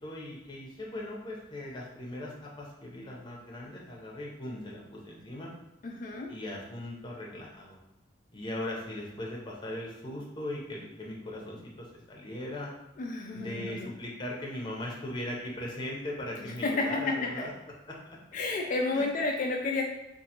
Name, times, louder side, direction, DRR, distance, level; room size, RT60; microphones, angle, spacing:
voice 1, 0.0-5.5 6.3-7.8 8.3-12.7 13.3-17.5 17.9-18.2 18.9-19.0, left 1 dB, 25° left, -3 dB, 0.7 m, -39 dB
voice 2, 5.8-6.3 13.0-13.9 16.6-17.5 18.3-19.8, left 3 dB, 45° left, 2 dB, 0.3 m, -31 dB
3.8 x 2.6 x 2.9 m, 0.92 s
head